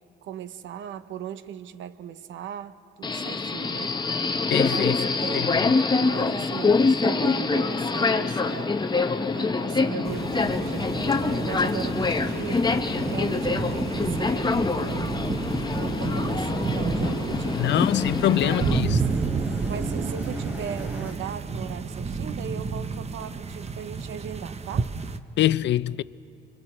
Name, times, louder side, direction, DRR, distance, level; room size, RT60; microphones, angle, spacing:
voice 1, 0.2-4.0 4.6-5.5 6.0-8.8 9.3-12.7 13.1-15.3 15.8-17.9 18.3-19.1 19.7-24.9, right 9 dB, 75° right, 0.7 m, -38 dB
Subway metro underground, 3.0-18.8, left 4 dB, 20° left, 0.9 m, -25 dB
voice 2, 4.5-4.9 5.3-5.7 17.5-19.0 25.4-26.0, left 13 dB, 65° left, 0.4 m, -24 dB
sound 1, 10.0-25.2, right 5 dB, 35° right, 0.8 m, -31 dB
sound 2, 15.4-21.1, left 1 dB, 10° right, 3.2 m, -37 dB
30.0 x 24.5 x 4.3 m
cardioid pair, 90°, 20 cm